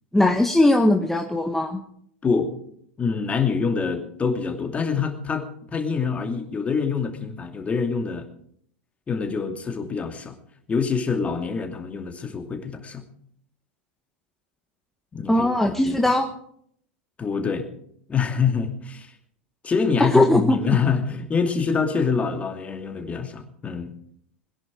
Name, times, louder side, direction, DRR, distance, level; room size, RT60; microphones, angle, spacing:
voice 1, 0.1-1.8 15.3-16.3 20.0-20.6, left 1 dB, 5° left, 3 dB, 1.3 m, -19 dB
voice 2, 3.0-8.2 9.1-10.3 10.7-13.0 15.1-16.0 17.2-17.7 18.1-19.1 19.6-23.9, left 5 dB, 20° left, 5 dB, 2.5 m, -25 dB
21.5 x 10.5 x 4.8 m, 0.67 s
hypercardioid pair, 90°, 6 cm